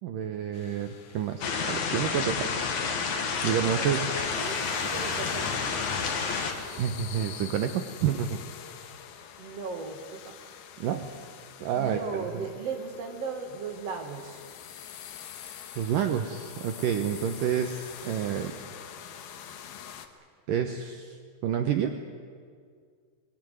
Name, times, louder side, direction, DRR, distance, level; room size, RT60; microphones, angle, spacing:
voice 1, 0.0-2.8 3.4-4.3 6.8-8.4 10.8-11.1 11.6-12.0 15.8-18.6 20.5-22.0, right 8 dB, 85° right, 6 dB, 1.9 m, -29 dB
sound 1, 0.5-20.1, left 9 dB, 65° left, 2.8 m, -45 dB
sound 2, 1.4-6.5, left 5 dB, 50° left, 2.8 m, -29 dB
voice 2, 3.5-3.9 4.1-5.7 9.4-10.3 11.7-14.5, right 4 dB, 45° right, 3 dB, 2.6 m, -37 dB
23.5 x 21.0 x 9.3 m, 2.1 s
omnidirectional pair, 5.3 m